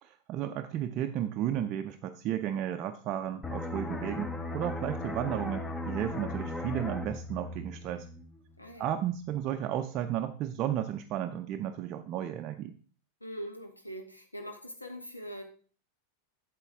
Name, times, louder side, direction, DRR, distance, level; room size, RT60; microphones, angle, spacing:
voice 1, 0.0-8.1 8.8-12.7, right 11 dB, 35° right, 6 dB, 0.5 m, -33 dB
sound 1, 3.4-8.8 9.1-9.4, left 2 dB, 10° left, 0.8 m, -37 dB
voice 2, 8.6-8.9 13.2-15.4, equal, 85° left, 5 dB, 1.5 m, -42 dB
8.2 x 7.4 x 3.5 m, 0.42 s
figure-of-eight pair, 90°, 0 cm